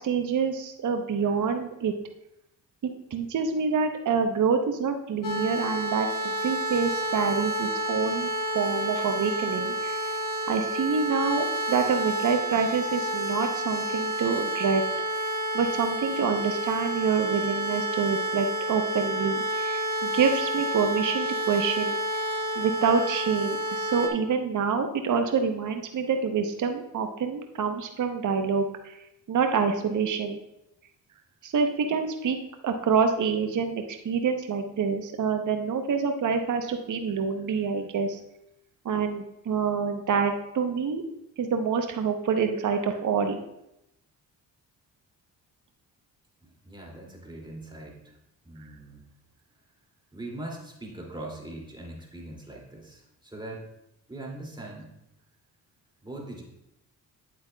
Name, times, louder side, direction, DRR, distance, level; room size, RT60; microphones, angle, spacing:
voice 1, 0.0-1.9 3.1-6.1 6.4-8.3 8.5-10.0 10.5-14.8 15.5-21.9 22.6-29.0 29.3-30.4 31.4-32.4 32.6-38.2 38.8-41.0 41.4-43.4, right 5 dB, 50° right, 6 dB, 0.8 m, -27 dB
sound 1, 5.2-24.1, right 1 dB, 55° left, 1.3 m, -30 dB
voice 2, 46.4-48.2 48.4-49.0 50.1-53.6 54.1-54.9 56.0-56.4, right 1 dB, 10° right, -1 dB, 2.4 m, -41 dB
9.1 x 7.7 x 2.2 m, 0.84 s
supercardioid pair, 55°, 38 cm